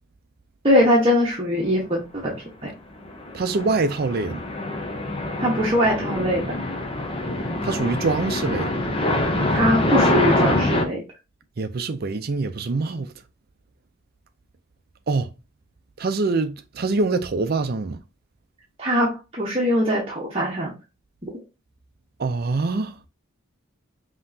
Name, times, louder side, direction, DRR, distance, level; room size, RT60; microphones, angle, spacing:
voice 1, 0.6-2.3 2.6-2.7 5.4-6.5 9.5-11.0 18.8-20.7, equal, 25° right, 1.0 m, -21 dB
sound 1, 3.0-10.9, left 1 dB, 25° left, 0.6 m, -24 dB
voice 2, 3.3-4.4 7.6-8.7 11.6-13.1 15.1-15.3 16.0-18.0 22.2-22.9, right 3 dB, 45° right, 0.5 m, -24 dB
5.4 x 2.9 x 2.7 m
head